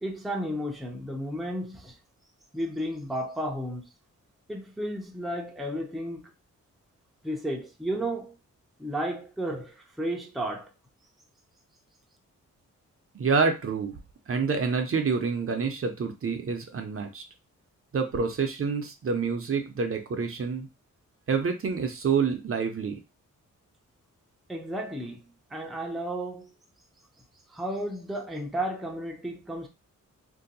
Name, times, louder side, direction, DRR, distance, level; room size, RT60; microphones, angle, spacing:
voice 1, 0.0-2.0 2.5-3.8 4.5-6.3 7.2-8.3 8.8-10.7 24.5-25.2 25.5-26.5 27.5-29.7, right 1 dB, ahead, 0.5 m, -33 dB
voice 2, 13.1-13.9 14.3-17.2 17.9-20.7 21.3-23.0, right 5 dB, 45° right, 0.6 m, -27 dB
2.7 x 2.2 x 3.9 m
wide cardioid pair, 100°, 31 cm